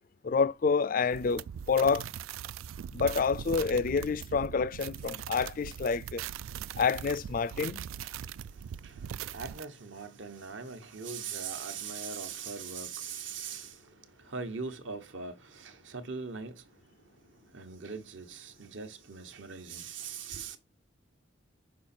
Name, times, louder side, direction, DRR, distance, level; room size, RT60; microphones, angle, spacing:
voice 1, 0.2-2.0 2.9-6.2 6.8-7.8, left 5 dB, 40° left, 0.3 m, -28 dB
sound 1, 1.1-9.6, right 9 dB, 85° right, 0.3 m, -41 dB
voice 2, 8.0-16.6 17.5-20.6, right 5 dB, 65° right, 1.1 m, -41 dB
6.3 x 4.9 x 4.3 m
head